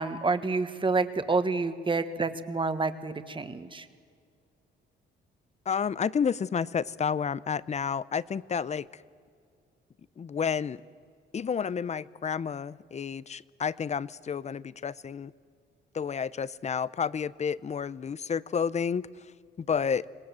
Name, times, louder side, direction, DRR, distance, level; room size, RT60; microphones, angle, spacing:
voice 1, 0.0-3.8, right 3 dB, 25° right, 11 dB, 1.5 m, -28 dB
voice 2, 5.7-8.9 10.2-10.8 11.3-15.3 15.9-19.1 19.6-20.0, left 6 dB, 35° left, 20 dB, 0.6 m, -30 dB
26.0 x 19.5 x 7.6 m, 2.2 s
cardioid pair, 90°, 20 cm